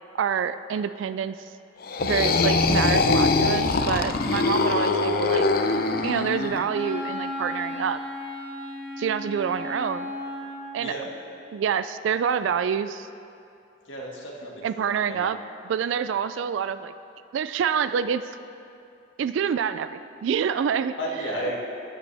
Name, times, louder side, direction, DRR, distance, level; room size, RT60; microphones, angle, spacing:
voice 1, 0.2-1.5 2.0-5.5 6.0-8.0 9.0-10.1 10.7-11.0 11.5-13.1 14.6-15.4 15.6-16.9 17.3-18.2 19.2-20.9, right 7 dB, 80° right, 12 dB, 0.3 m, -27 dB
sound 1, 1.8-6.6, left 3 dB, 50° left, 0.5 m, -22 dB
Wind instrument woodwind instrument, 6.0-10.8, left 1 dB, 10° left, 2.3 m, -35 dB
voice 2, 10.8-11.1 13.9-15.3 21.0-21.6, equal, 85° left, -3 dB, 1.9 m, -33 dB
14.0 x 9.7 x 3.4 m, 2.6 s
head